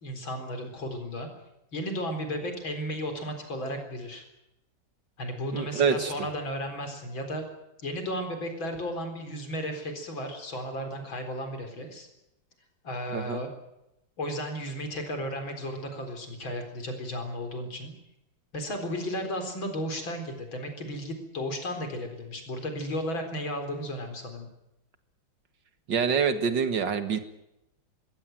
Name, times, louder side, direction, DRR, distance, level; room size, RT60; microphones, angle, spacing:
voice 1, 0.0-1.3 1.7-4.2 5.2-7.5 7.8-12.1 12.8-13.5 14.2-17.9 18.5-24.5, equal, 85° left, 5 dB, 4.8 m, -34 dB
voice 2, 5.5-6.1 13.1-13.4 25.9-27.2, right 6 dB, 65° right, 9 dB, 2.3 m, -26 dB
22.0 x 16.5 x 9.2 m, 0.88 s
omnidirectional pair, 2.1 m